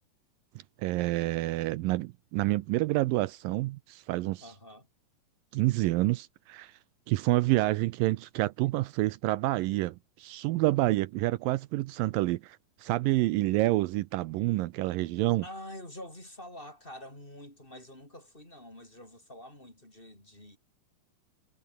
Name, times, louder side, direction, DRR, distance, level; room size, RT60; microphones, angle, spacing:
voice 1, 0.8-4.4 5.5-6.7 7.1-15.4, right 18 dB, 80° right, 2.3 m, -28 dB
voice 2, 4.4-4.9 15.4-20.6, left 1 dB, 15° left, 6.5 m, -46 dB
omnidirectional pair, 4.1 m